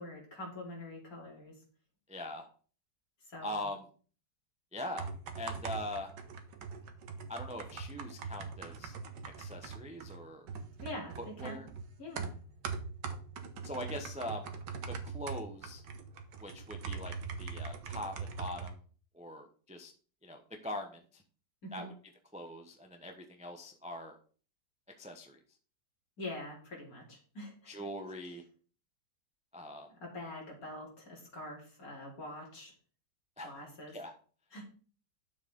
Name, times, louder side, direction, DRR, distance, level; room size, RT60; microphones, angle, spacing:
voice 1, 0.0-1.6 3.3-3.7 10.8-11.6 12.0-12.3 21.6-21.9 26.2-27.7 29.9-32.7 33.4-34.0 34.5-34.6, left 1 dB, 55° left, -2 dB, 3.5 m, -45 dB
voice 2, 2.1-2.5 3.4-3.8 4.7-5.1 5.4-6.1 7.3-8.9 9.4-10.4 11.2-11.7 13.6-14.5 14.9-15.8 16.4-18.8 19.1-19.9 20.2-21.2 21.7-21.9 22.3-24.2 25.0-25.4 27.7-28.4 29.5-29.9 33.4-33.6 33.9-34.1, left 1 dB, 5° right, 4 dB, 0.7 m, -42 dB
sound 1, 4.8-18.7, right 5 dB, 80° right, 1.7 m, -42 dB
9.9 x 7.2 x 3.7 m, 0.41 s
omnidirectional pair, 1.9 m